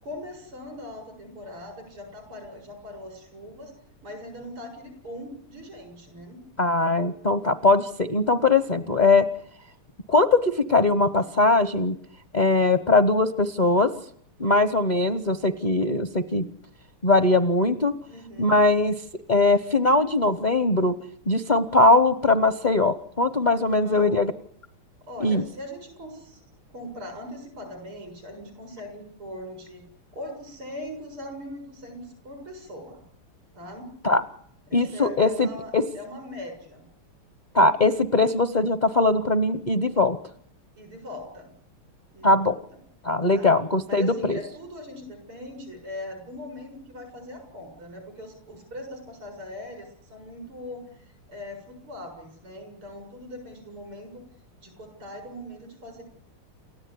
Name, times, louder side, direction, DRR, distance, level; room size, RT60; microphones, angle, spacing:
voice 1, 0.0-3.7 4.0-6.4 18.1-18.6 23.6-24.2 25.1-26.4 26.7-29.8 30.1-33.0 33.5-33.9 34.7-36.9 40.8-41.5 42.1-42.5 43.3-43.5 43.9-50.9 51.3-54.3 54.6-56.0, left 1 dB, 90° right, 5 dB, 8.0 m, -40 dB
voice 2, 6.6-9.3 10.1-12.0 12.3-13.9 14.4-16.5 17.0-17.9 18.4-18.9 19.3-21.0 21.3-24.3 25.2-25.4 34.0-34.2 34.7-35.5 35.7-35.8 37.5-40.2 42.2-42.6 43.0-44.4, left 2 dB, 40° left, 10 dB, 0.6 m, -21 dB
29.0 x 14.0 x 9.8 m, 0.65 s
omnidirectional pair, 2.3 m